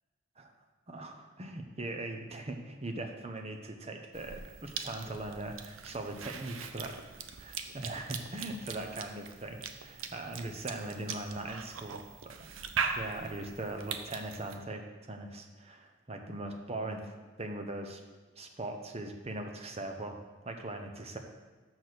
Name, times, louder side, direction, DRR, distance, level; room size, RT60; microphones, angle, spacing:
voice 1, 0.9-7.0 7.4-12.4 12.9-18.0 18.4-20.2 20.4-21.2, right 2 dB, 30° right, 4 dB, 0.8 m, -40 dB
Cough / Chewing mastication, 4.1-14.6, right 6 dB, 85° right, 0.6 m, -41 dB
6.1 x 6.1 x 6.7 m, 1.3 s
head